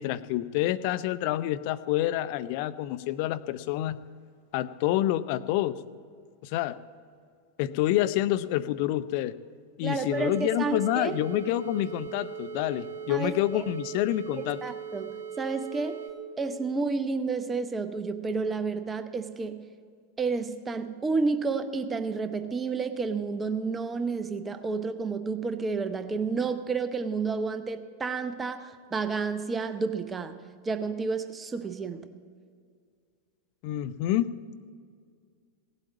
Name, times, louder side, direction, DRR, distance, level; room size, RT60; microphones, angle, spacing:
voice 1, 0.0-4.0 4.5-5.8 6.4-6.8 7.6-9.3 9.8-14.6 33.6-34.3, left 14 dB, 45° left, 13 dB, 0.5 m, -28 dB
voice 2, 9.8-11.2 13.1-13.6 14.6-16.0 16.4-19.6 20.2-32.1, right 4 dB, 15° right, 10 dB, 0.8 m, -31 dB
sound 1, 10.1-16.1, right 8 dB, 60° right, 2.6 m, -39 dB
17.0 x 8.2 x 8.3 m, 2.1 s
figure-of-eight pair, 90°, 0 cm